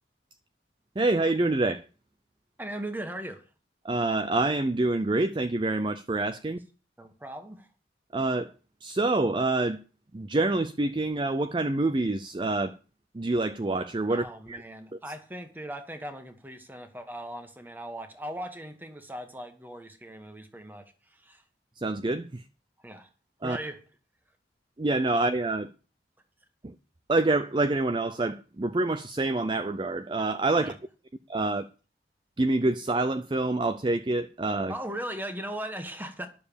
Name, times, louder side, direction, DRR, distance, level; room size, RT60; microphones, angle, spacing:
voice 1, 1.0-1.9 3.8-6.6 8.1-8.5 8.8-9.8 10.1-12.7 13.1-14.6 14.9-15.0 21.8-22.4 23.4-23.6 24.8-25.7 26.6-26.7 27.1-30.7 31.3-31.7 32.4-34.7, right 2 dB, 25° right, 0.4 m, -27 dB
voice 2, 2.6-3.4 7.0-7.7 14.1-21.4 22.8-23.1 23.4-23.8 30.6-30.7 34.7-36.3, right 1 dB, 10° right, 1.3 m, -38 dB
11.0 x 6.7 x 6.9 m
head